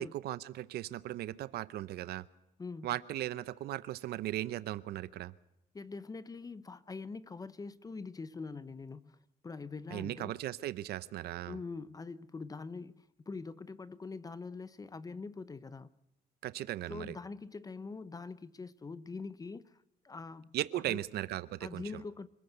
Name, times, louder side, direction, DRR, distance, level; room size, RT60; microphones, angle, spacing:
voice 1, 0.2-2.2 2.8-5.3 9.9-11.6 16.4-17.2 20.5-22.0, right 14 dB, 70° right, 0.8 m, -37 dB
voice 2, 5.7-10.3 11.5-15.9 16.9-20.5 20.9-21.0 21.6-22.3, left 4 dB, 20° left, 0.8 m, -44 dB
26.0 x 14.0 x 8.0 m
cardioid pair, 110°, 17 cm